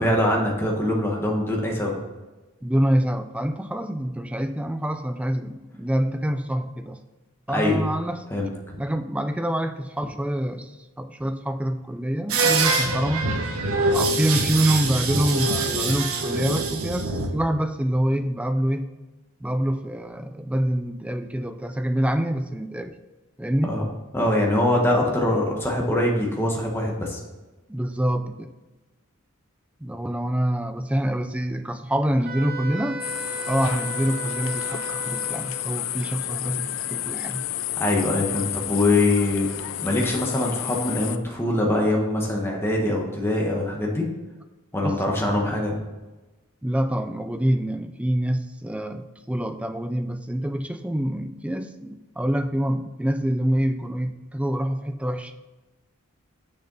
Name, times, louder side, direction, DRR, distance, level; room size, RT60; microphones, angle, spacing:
voice 1, 0.0-2.0 7.5-7.9 8.3-8.8 23.7-23.8 24.1-27.2 37.8-39.5 39.8-44.1 44.7-45.8, left 1 dB, 10° left, -1 dB, 1.3 m, -23 dB
voice 2, 2.6-7.0 7.5-8.2 8.8-13.2 13.9-18.9 19.4-22.9 23.4-23.8 27.7-28.5 29.8-33.0 33.5-37.5 44.8-45.0 46.6-55.3, right 1 dB, 5° right, 9 dB, 0.3 m, -26 dB
sound 1, 12.3-17.3, right 3 dB, 75° right, 1.2 m, -24 dB
Wind instrument woodwind instrument, 32.2-35.7, right 3 dB, 45° right, 1.2 m, -35 dB
sound 2, 33.0-41.2, left 12 dB, 60° left, 0.4 m, -31 dB
6.7 x 6.6 x 5.4 m, 1.1 s
head